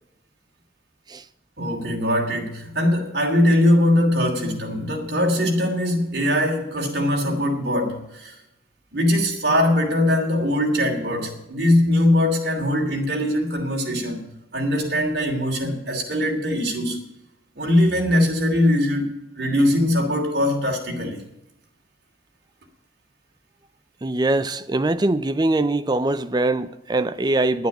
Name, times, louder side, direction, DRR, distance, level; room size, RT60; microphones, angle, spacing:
voice 1, 1.6-8.4 8.9-14.2 14.5-17.0 17.6-19.0 19.4-21.2, left 1 dB, 60° right, 2.9 m, -21 dB
voice 2, 24.0-27.7, right 2 dB, 25° right, 0.5 m, -22 dB
10.5 x 9.4 x 7.8 m
head